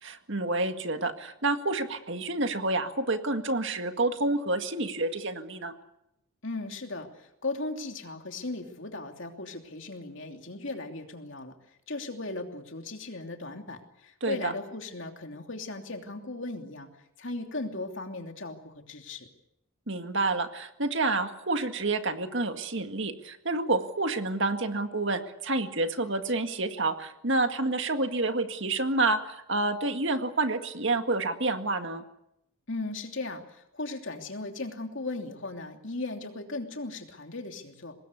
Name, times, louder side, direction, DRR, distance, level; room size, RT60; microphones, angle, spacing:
voice 1, 0.0-5.7 14.2-14.5 19.9-32.0, right 2 dB, 55° right, 7 dB, 2.0 m, -29 dB
voice 2, 6.4-11.5 11.9-16.9 17.2-19.3 32.7-37.9, left 2 dB, 55° left, 4 dB, 3.0 m, -37 dB
24.5 x 20.0 x 8.3 m, 0.82 s
head